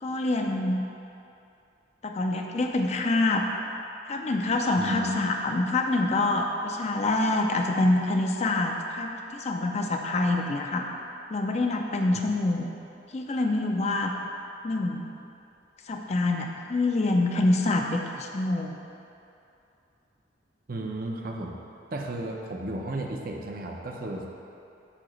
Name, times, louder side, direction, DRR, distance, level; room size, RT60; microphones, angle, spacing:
voice 1, 0.0-0.8 2.0-3.5 4.1-10.9 11.3-12.6 13.1-14.1 14.6-15.1 15.9-18.8, left 2 dB, 35° left, 2 dB, 0.4 m, -26 dB
voice 2, 4.8-5.3 12.1-12.2 20.7-21.5 21.9-24.3, right 1 dB, 50° right, 1 dB, 0.6 m, -33 dB
8.5 x 2.9 x 6.3 m, 2.7 s
head